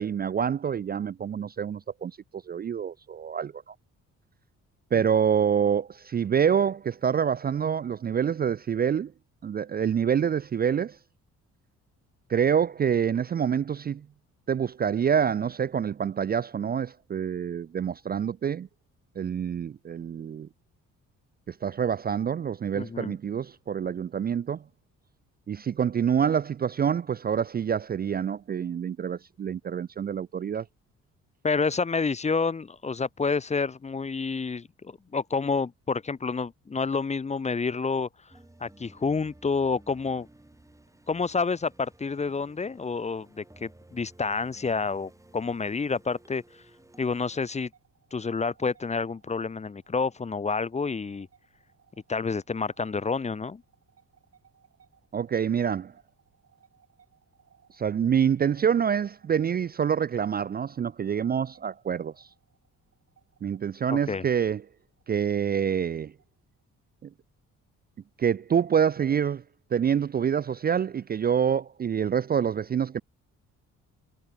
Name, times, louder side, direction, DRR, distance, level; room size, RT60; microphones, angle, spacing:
voice 1, 0.0-3.7 4.9-9.1 9.4-11.0 12.3-14.0 14.5-18.7 19.2-20.5 21.5-24.6 25.5-30.6 55.1-55.9 57.8-62.3 63.4-64.6 65.1-66.1 67.0-67.1 68.2-69.4 69.7-73.0, right 8 dB, 30° right, 0.4 m, -26 dB
voice 2, 22.7-23.2 31.4-38.1 38.6-40.3 41.1-46.4 47.0-47.7 48.1-51.3 52.1-53.6 63.9-64.2, left 4 dB, 20° left, 0.8 m, -29 dB
sound 1, 38.3-47.5, right 1 dB, 10° right, 4.9 m, -55 dB
sound 2, 47.3-66.6, right 7 dB, 50° right, 5.5 m, -64 dB
cardioid pair, 90°, 30 cm